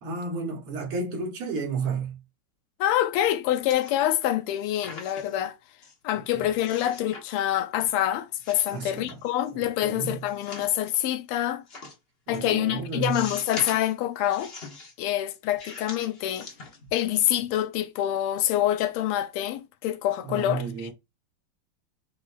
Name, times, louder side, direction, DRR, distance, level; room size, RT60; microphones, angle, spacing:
voice 1, 0.0-2.2 6.2-6.3 8.7-9.2 9.5-10.2 12.3-13.3 20.2-20.9, right 4 dB, 85° right, 2.7 m, -32 dB
voice 2, 2.8-5.6 6.0-11.6 12.3-14.5 15.0-16.5 16.9-20.9, left 12 dB, 85° left, 1.5 m, -26 dB
sound 1, 3.7-4.3 4.6-5.4 5.8-5.9 6.6-7.2 7.6-8.0 8.4-9.5 10.3-11.0 11.7-11.9 12.3-12.4 13.0-13.9 14.3-14.9 15.6-17.1 17.4-17.6, left 3 dB, 40° left, 0.9 m, -42 dB
6.6 x 2.9 x 2.3 m
omnidirectional pair, 2.4 m